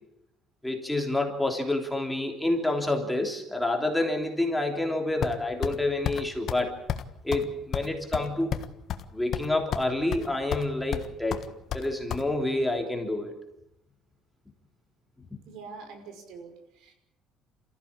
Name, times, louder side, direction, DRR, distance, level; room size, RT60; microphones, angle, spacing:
voice 1, 0.6-6.7 7.2-8.6 9.1-11.5 11.7-13.3, left 2 dB, 5° left, 2 dB, 3.3 m, -28 dB
sound 1, 5.2-5.8 6.1-6.2 6.5-6.6 6.9-7.1 7.3-7.5 7.7-9.1 9.3-9.9 10.1-10.7 10.9-12.2, left 10 dB, 50° left, 1.4 m, -31 dB
voice 2, 15.5-16.9, right 4 dB, 80° right, 6 dB, 5.8 m, -45 dB
28.5 x 15.0 x 8.7 m, 0.85 s
cardioid pair, 155°, 0 cm